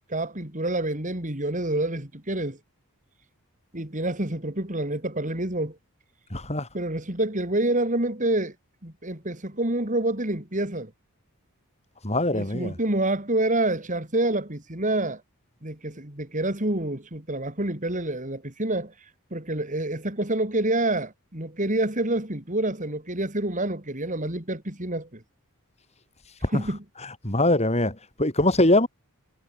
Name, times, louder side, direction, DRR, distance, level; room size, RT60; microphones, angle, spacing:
voice 1, 0.1-2.6 3.7-5.8 6.7-8.5 8.8-10.9 12.3-15.2 15.6-18.9 19.3-25.2 26.5-26.8, right 1 dB, 35° right, 3.9 m, -27 dB
voice 2, 6.3-6.7 12.0-12.7 27.2-27.9 28.2-28.9, left 1 dB, 30° left, 6.9 m, -22 dB
head